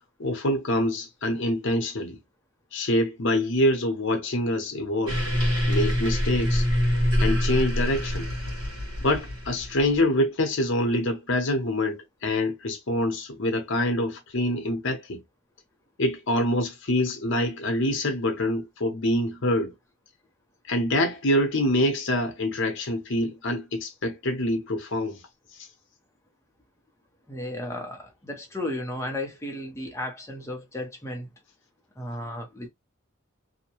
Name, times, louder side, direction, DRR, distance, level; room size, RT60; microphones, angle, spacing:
voice 1, 0.2-2.2 2.7-5.2 5.7-6.6 7.2-8.3 9.0-15.2 16.0-19.7 20.7-25.2, left 1 dB, 60° left, 0.8 m, -25 dB
sound 1, 5.1-10.0, equal, 75° right, 1.4 m, -25 dB
voice 2, 27.3-31.3 32.0-32.7, left 1 dB, 15° left, 0.7 m, -34 dB
2.7 x 2.1 x 2.9 m
head